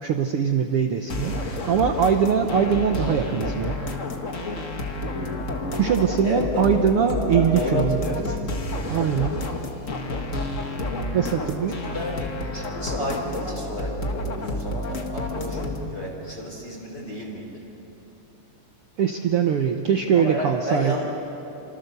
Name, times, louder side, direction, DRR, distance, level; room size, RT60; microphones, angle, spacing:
voice 1, 0.0-3.8 5.7-8.0 8.9-9.4 11.1-11.8 19.0-20.9, right 7 dB, 90° right, 5 dB, 1.2 m, -22 dB
sound 1, 1.1-15.9, left 1 dB, 50° left, 0.9 m, -30 dB
voice 2, 6.2-8.4 11.7-17.7 20.1-21.0, left 1 dB, 30° left, -4 dB, 4.0 m, -31 dB
28.0 x 26.5 x 6.9 m, 2.8 s
omnidirectional pair, 4.0 m